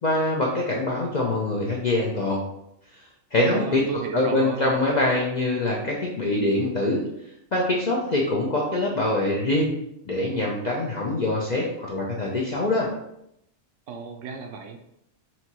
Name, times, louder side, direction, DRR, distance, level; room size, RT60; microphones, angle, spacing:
voice 1, 0.0-2.4 3.3-3.8 4.1-7.0 7.5-9.7 10.0-12.9, left 2 dB, 50° left, -3 dB, 0.5 m, -24 dB
voice 2, 3.3-4.7 13.9-14.8, right 5 dB, 70° right, 4 dB, 0.9 m, -33 dB
5.9 x 2.7 x 2.9 m, 0.79 s
omnidirectional pair, 1.4 m